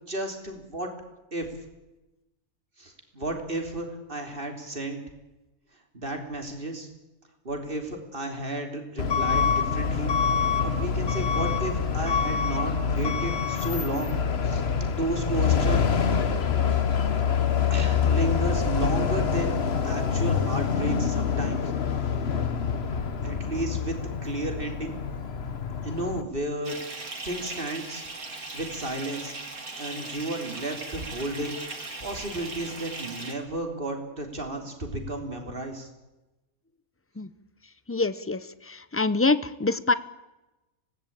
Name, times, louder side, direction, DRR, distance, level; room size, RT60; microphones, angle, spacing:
voice 1, 0.1-0.9 1.3-1.5 2.8-5.0 5.9-6.9 7.4-10.1 10.6-14.2 14.4-14.6 14.9-15.9 17.7-19.6 19.8-21.7 23.2-24.0 24.2-24.9 25.8-26.8 27.2-28.1 28.5-29.3 29.8-35.9, right 1 dB, 40° right, 4 dB, 3.7 m, -33 dB
Truck / Alarm, 9.0-26.2, left 6 dB, 50° left, 1.4 m, -26 dB
Bathtub (filling or washing) / Fill (with liquid), 26.6-33.3, right 3 dB, 75° right, 3.4 m, -38 dB
voice 2, 37.9-39.9, left 3 dB, 20° left, 15 dB, 0.4 m, -25 dB
25.0 x 18.5 x 8.9 m, 1.0 s
omnidirectional pair, 1.5 m